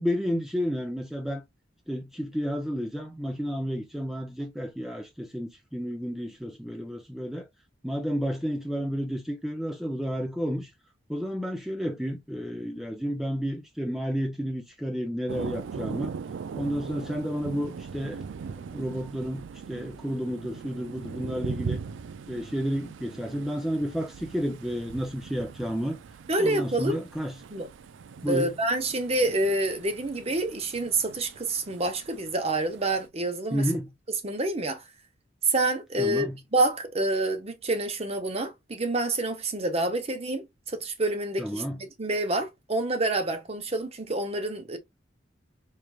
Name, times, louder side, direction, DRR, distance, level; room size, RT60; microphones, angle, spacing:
voice 1, 0.0-1.4 1.9-7.5 7.8-10.7 11.1-16.1 16.5-18.2 18.7-21.8 22.3-26.0 26.4-27.3 28.2-28.5 33.5-33.9 36.0-36.4 41.4-41.8, equal, ahead, 0.5 m, -31 dB
Thunder, 15.3-33.1, right 5 dB, 85° right, 0.4 m, -40 dB
voice 2, 26.3-27.0 27.5-27.7 28.3-33.6 34.2-34.8 35.4-44.8, right 2 dB, 35° right, 0.8 m, -28 dB
4.7 x 3.2 x 2.3 m
head